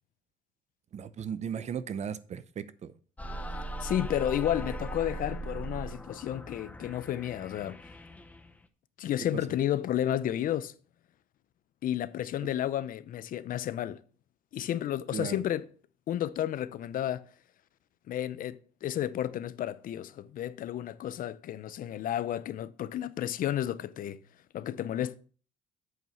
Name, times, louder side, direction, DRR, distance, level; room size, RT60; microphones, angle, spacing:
voice 1, 0.9-2.9 15.1-15.4, right 7 dB, 40° right, 0.7 m, -36 dB
sound 1, 3.2-8.6, right 2 dB, 10° left, 0.7 m, -39 dB
voice 2, 3.8-7.8 9.0-10.7 11.8-14.0 14.5-15.7 16.1-17.2 18.1-24.2 24.5-25.2, left 11 dB, 55° left, 0.6 m, -32 dB
8.0 x 4.7 x 5.6 m
cardioid pair, 110°, 17 cm